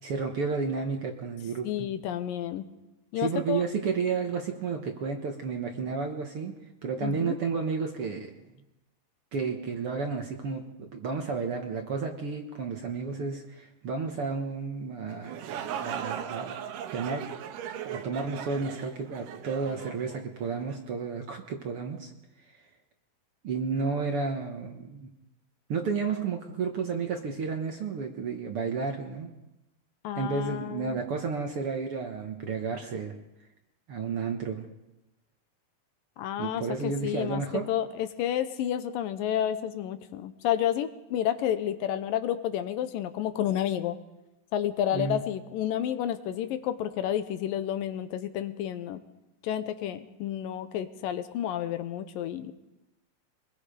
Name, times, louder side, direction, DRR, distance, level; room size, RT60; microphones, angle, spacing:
voice 1, 0.0-1.9 3.2-8.4 9.3-16.6 16.9-17.3 17.8-22.1 22.4-22.6 23.4-25.1 25.7-29.3 30.1-33.1 33.9-34.7 36.4-37.7 44.9-45.2, right 5 dB, 55° right, 3 dB, 1.7 m, -32 dB
voice 2, 1.6-2.7 3.1-3.6 7.0-7.4 30.0-31.0 36.2-37.4 37.7-44.0 44.5-49.0 49.4-52.5, left 11 dB, 80° left, 11 dB, 2.6 m, -30 dB
sound 1, 15.1-20.8, right 9 dB, 75° right, 2.6 m, -38 dB
24.0 x 21.5 x 5.1 m, 0.97 s
omnidirectional pair, 4.0 m